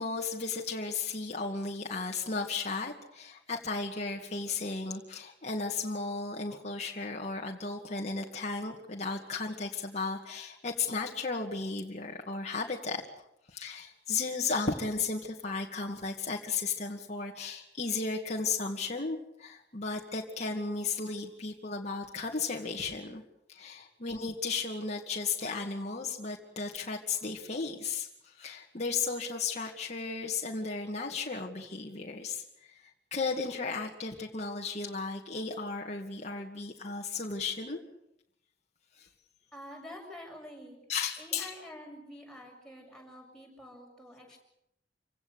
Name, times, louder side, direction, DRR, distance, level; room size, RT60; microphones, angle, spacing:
voice 1, 0.0-13.0 13.5-23.2 23.5-32.8 33.1-37.8 39.0-39.1 40.9-41.5, left 4 dB, 40° left, -1 dB, 2.2 m, -35 dB
voice 2, 39.5-40.8 41.2-44.4, left 1 dB, 5° left, -1 dB, 7.1 m, -47 dB
27.5 x 17.0 x 8.3 m, 0.79 s
head